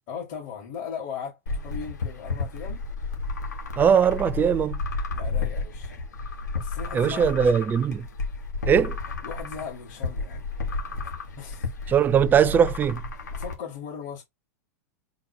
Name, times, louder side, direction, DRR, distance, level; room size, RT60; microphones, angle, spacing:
voice 1, 0.1-2.8 5.1-5.9 6.5-7.2 7.5-7.6 9.2-10.4 11.4-11.7 13.3-14.2, left 7 dB, 55° left, 2.2 m, -38 dB
sound 1, 1.5-13.5, left 3 dB, 85° left, 1.4 m, -32 dB
voice 2, 3.8-4.8 6.9-8.1 8.7-9.0 11.9-13.0, right 8 dB, 20° right, 0.4 m, -20 dB
4.0 x 2.1 x 4.4 m
hypercardioid pair, 115°, 9 cm